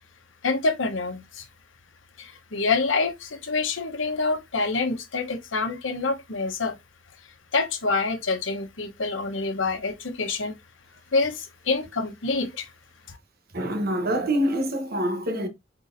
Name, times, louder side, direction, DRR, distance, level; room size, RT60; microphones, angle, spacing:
voice 1, 0.4-1.4 2.2-6.8 7.5-10.6 11.1-12.7 13.1-13.2, left 3 dB, 80° left, 1.0 m, -26 dB
voice 2, 13.5-15.5, equal, 55° right, 1.0 m, -25 dB
4.1 x 4.0 x 2.6 m
head